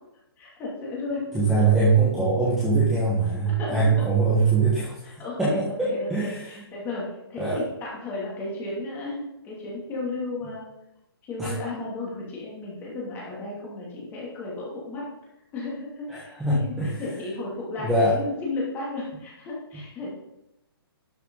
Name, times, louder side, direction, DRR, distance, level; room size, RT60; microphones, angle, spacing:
voice 1, 0.4-1.4 3.6-4.1 5.0-10.7 11.3-15.1 15.5-20.1, left 2 dB, 15° left, -5 dB, 2.7 m, -34 dB
voice 2, 1.3-4.9 5.4-6.4 7.4-7.6 11.4-11.5 16.1-16.9 17.8-18.1, right 3 dB, 5° right, -9 dB, 1.4 m, -22 dB
12.0 x 6.6 x 4.0 m, 0.90 s
hypercardioid pair, 165°, 13 cm